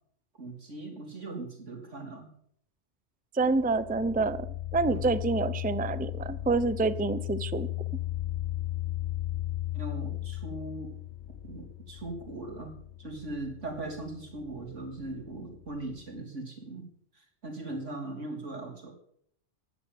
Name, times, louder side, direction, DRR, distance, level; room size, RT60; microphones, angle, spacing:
voice 1, 0.4-2.3 4.9-5.0 9.7-10.9 11.4-12.7 13.0-16.8 17.1-18.9, right 2 dB, 85° right, 2 dB, 3.8 m, -39 dB
voice 2, 3.3-4.5 4.7-7.7, right 3 dB, 10° right, 14 dB, 0.5 m, -27 dB
sound 1, 3.4-16.2, left 14 dB, 65° left, 1.0 m, -36 dB
15.0 x 10.0 x 8.0 m, 0.67 s
omnidirectional pair, 1.2 m